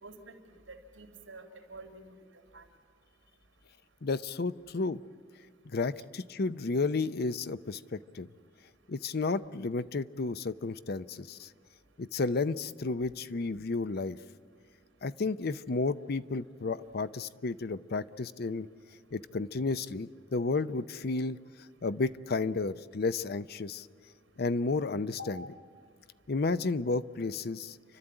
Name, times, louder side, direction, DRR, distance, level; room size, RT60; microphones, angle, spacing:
voice 1, 0.0-2.1 2.5-2.6 25.2-25.3, right 1 dB, 85° right, 5 dB, 3.0 m, -48 dB
voice 2, 4.0-5.0 5.7-8.3 8.9-11.5 12.0-14.2 15.0-18.7 19.1-21.4 21.8-23.9 24.4-25.4 26.3-27.8, left 3 dB, 55° left, 15 dB, 0.6 m, -32 dB
30.0 x 12.5 x 8.9 m, 2.1 s
head